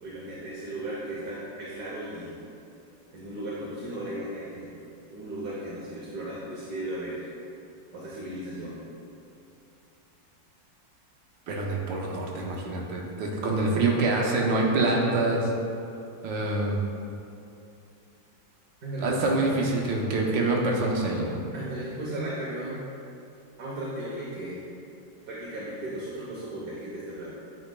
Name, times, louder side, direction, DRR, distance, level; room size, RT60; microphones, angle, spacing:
voice 1, 0.0-2.3 3.1-4.7 5.1-7.2 7.9-8.8 18.8-19.2 21.5-22.8 23.6-24.6 25.3-27.3, right 1 dB, 60° right, -6 dB, 1.4 m, -36 dB
voice 2, 11.5-15.5 16.2-16.8 19.0-21.4, right 2 dB, 80° right, -1 dB, 1.6 m, -26 dB
9.6 x 5.0 x 2.2 m, 2.7 s
omnidirectional pair, 2.0 m